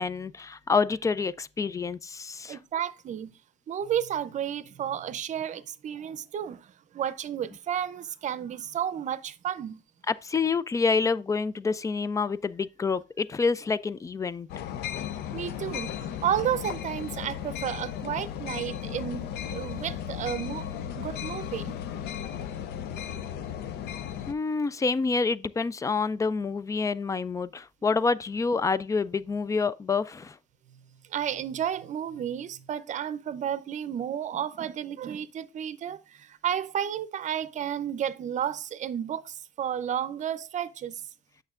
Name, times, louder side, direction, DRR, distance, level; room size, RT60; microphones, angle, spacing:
voice 1, 0.0-2.6 10.1-14.5 24.3-30.4, left 4 dB, 20° left, 0.3 m, -27 dB
voice 2, 2.5-3.4 3.7-9.8 15.3-20.7 20.9-21.8 30.7-30.8 31.1-41.0, right 9 dB, 45° right, 0.6 m, -32 dB
sound 1, 14.5-24.3, left 9 dB, 75° left, 0.6 m, -35 dB
8.5 x 6.5 x 2.5 m
cardioid pair, 110°, 17 cm